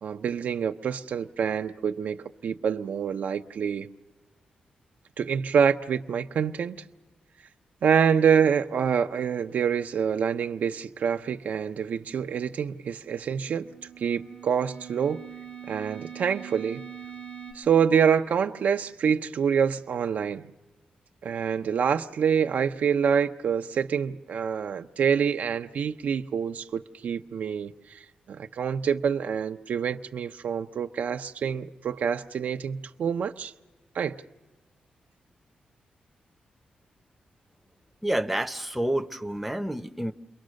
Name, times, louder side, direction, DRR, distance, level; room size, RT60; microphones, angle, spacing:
voice 1, 0.0-3.9 5.2-6.8 7.8-13.7 14.0-15.2 15.7-16.8 17.5-20.5 21.2-33.5 33.9-34.2, right 7 dB, 75° right, 0.7 m, -26 dB
sound 1, 13.1-17.5, right 8 dB, 70° left, 4.6 m, -43 dB
voice 2, 38.0-40.1, right 1 dB, 5° right, 0.8 m, -28 dB
29.0 x 22.0 x 6.4 m
cardioid pair, 95°, 3 cm